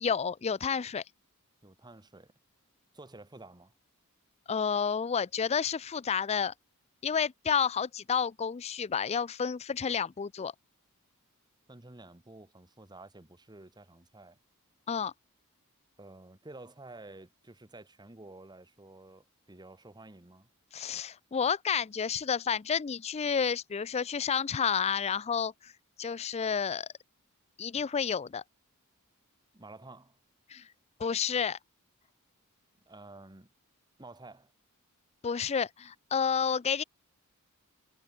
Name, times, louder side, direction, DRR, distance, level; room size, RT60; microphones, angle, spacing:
voice 1, 0.0-1.0 4.5-6.5 7.0-10.5 14.9-15.1 20.7-25.7 26.0-26.9 27.6-28.4 30.5-30.6 31.0-31.6 35.2-36.8, left 6 dB, 30° left, 0.4 m, -30 dB
voice 2, 1.6-2.3 2.9-3.7 11.7-14.4 16.0-20.5 29.5-30.2 32.9-33.5 34.0-34.5, right 2 dB, 20° right, 1.3 m, -51 dB
head